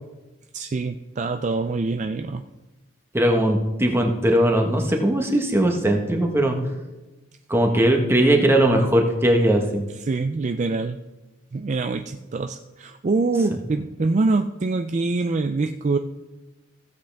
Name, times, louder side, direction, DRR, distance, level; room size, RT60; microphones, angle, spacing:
voice 1, 0.5-2.4 10.0-11.0 11.5-16.0, right 3 dB, 35° right, 7 dB, 0.4 m, -25 dB
voice 2, 3.1-6.6 7.5-9.9, right 1 dB, 10° right, 2 dB, 1.2 m, -19 dB
15.5 x 7.8 x 3.5 m, 1.1 s
head